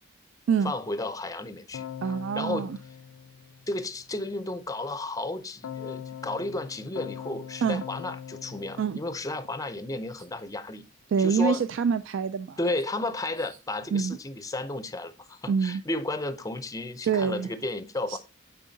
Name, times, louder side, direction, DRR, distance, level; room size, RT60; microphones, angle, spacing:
voice 1, 0.6-1.9 2.4-2.7 3.7-10.8 11.2-11.6 12.6-18.2, left 2 dB, 15° left, 0.5 m, -33 dB
Keyboard (musical), 1.7-4.1 5.6-9.9, left 8 dB, 75° left, 0.4 m, -42 dB
voice 2, 2.0-2.8 7.6-7.8 8.8-9.0 11.1-12.6 13.9-14.2 15.5-15.8 17.0-17.5 18.1-18.2, right 6 dB, 60° right, 0.3 m, -26 dB
7.4 x 4.6 x 3.9 m
head